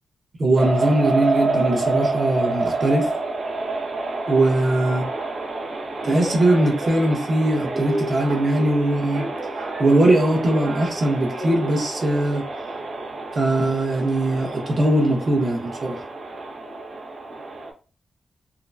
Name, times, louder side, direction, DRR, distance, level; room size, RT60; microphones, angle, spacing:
voice 1, 0.4-3.1 4.3-5.0 6.0-9.3 9.8-12.4 13.3-16.0, right 1 dB, 40° right, 0 dB, 0.9 m, -20 dB
sound 1, 0.5-17.7, right 2 dB, 80° right, 0.8 m, -28 dB
3.7 x 2.1 x 2.3 m, 0.36 s
wide cardioid pair, 145°, 0 cm